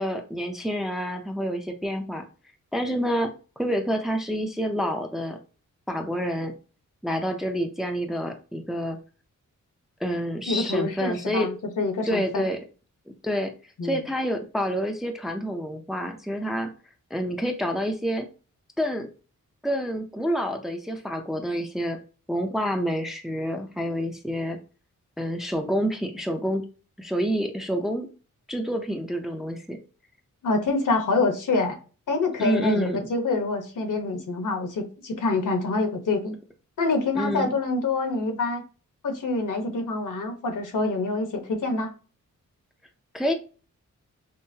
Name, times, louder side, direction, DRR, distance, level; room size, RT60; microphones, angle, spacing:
voice 1, 0.0-2.2 2.7-3.3 3.6-5.4 5.9-6.5 7.0-9.0 10.0-11.5 12.1-12.6 13.1-13.5 13.8-16.7 17.1-18.3 18.8-19.1 19.6-22.0 22.3-24.6 25.2-26.6 27.0-28.1 28.5-29.8 32.4-33.1 37.1-37.5 43.1-43.3, equal, ahead, 4 dB, 0.5 m, -28 dB
voice 2, 10.5-12.5 13.8-14.0 30.4-31.8 32.1-36.4 36.8-38.6 39.0-41.9, left 3 dB, 75° left, 5 dB, 1.1 m, -26 dB
5.6 x 2.1 x 2.7 m, 0.36 s
wide cardioid pair, 105°, 31 cm